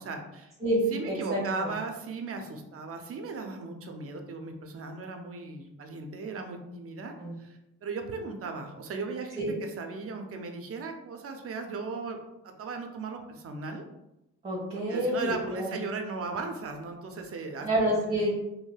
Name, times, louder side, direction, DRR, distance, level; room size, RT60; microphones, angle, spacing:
voice 1, 0.0-0.5 0.9-12.2 12.4-13.8 14.9-17.9, right 4 dB, 50° right, 4 dB, 0.5 m, -37 dB
voice 2, 0.6-1.7 7.2-7.3 9.4-9.5 14.4-15.8 17.6-18.3, right 1 dB, 20° right, -5 dB, 1.1 m, -28 dB
3.0 x 2.7 x 2.3 m, 0.90 s
cardioid pair, 90°, 30 cm